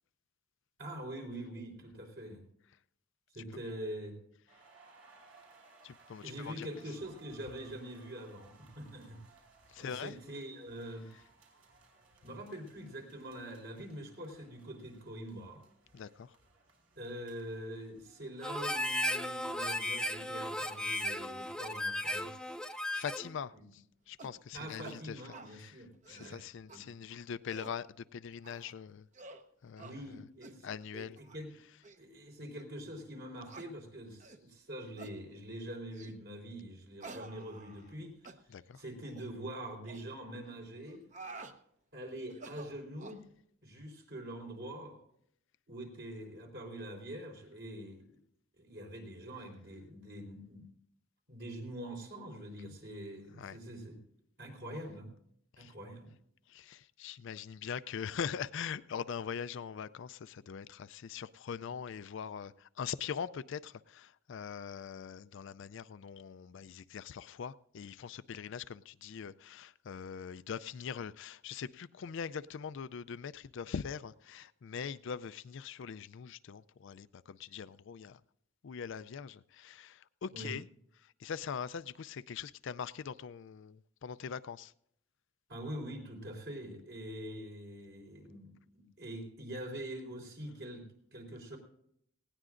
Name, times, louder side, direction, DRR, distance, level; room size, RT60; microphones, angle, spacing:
voice 1, 0.8-2.4 3.3-4.2 6.2-9.2 9.8-11.1 12.2-15.6 17.0-22.3 23.5-23.7 24.5-27.2 29.8-30.7 30.9-31.5 32.0-41.0 41.9-43.3 43.6-45.0 45.7-48.2 48.6-50.7 51.3-54.0 54.4-55.1 55.6-56.1 80.3-80.6 85.5-91.6, right 1 dB, 60° right, 3.9 m, -44 dB
sound 1, 4.5-22.5, right 3 dB, 80° right, 4.4 m, -64 dB
voice 2, 5.8-6.7 9.7-10.1 15.9-16.4 22.9-25.2 25.5-25.7 26.1-29.1 29.6-30.2 30.6-31.2 38.5-38.8 53.4-53.6 55.6-55.7 56.5-78.2 78.6-80.7 81.0-84.7, left 7 dB, 65° left, 0.4 m, -42 dB
Harmonica, 18.4-23.3, left 1 dB, 5° left, 0.5 m, -35 dB
sound 2, 24.2-24.4 24.8-25.0 25.3-25.5 25.9-26.3 26.7-26.8 27.3-27.8 28.4-28.7 29.1-29.4 29.8-30.0 30.4-30.6 31.2-31.4 31.8-32.0 32.6-32.7 33.5-33.7 34.2-34.4 35.0-35.2 35.9-36.2 37.0-38.0 38.2-38.4 39.0-39.3 39.8-40.0 40.9-41.6 42.3-43.2, right 3 dB, 40° right, 0.9 m, -50 dB
19.0 x 17.0 x 2.5 m
head